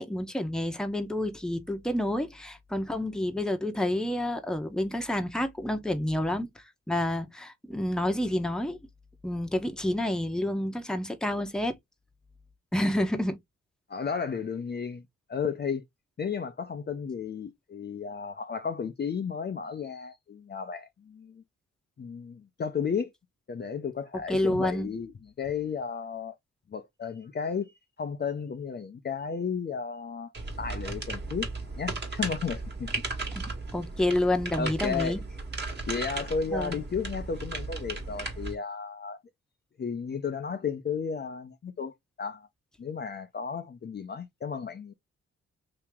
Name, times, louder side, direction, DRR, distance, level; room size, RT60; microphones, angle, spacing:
voice 1, 0.0-6.5 6.9-8.8 9.2-11.8 12.7-13.4 24.1-24.9 33.3-35.2 36.5-36.8, left 1 dB, ahead, 0.8 m, -29 dB
voice 2, 13.9-15.0 15.3-15.8 16.2-21.4 22.0-23.1 23.5-26.4 26.7-27.7 28.0-31.5 31.8-32.9 34.6-35.2 35.9-39.2 39.8-42.5 42.8-44.9, left 6 dB, 35° left, 0.6 m, -33 dB
sound 1, 30.3-38.5, right 3 dB, 35° right, 1.5 m, -36 dB
3.0 x 2.8 x 3.5 m
cardioid pair, 75°, 29 cm